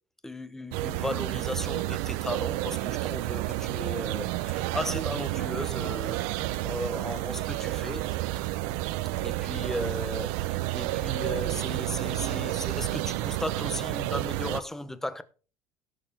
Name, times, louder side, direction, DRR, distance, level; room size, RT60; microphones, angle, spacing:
voice 1, 0.2-8.1 9.2-15.2, left 1 dB, 5° left, 0.9 m, -36 dB
sound 1, 0.7-14.6, right 17 dB, 90° right, 0.6 m, -30 dB
Typing, 3.1-9.7, left 6 dB, 55° left, 4.6 m, -58 dB
sound 2, 8.5-13.5, right 12 dB, 50° right, 0.7 m, -48 dB
17.5 x 6.7 x 3.5 m
cardioid pair, 135°, 7 cm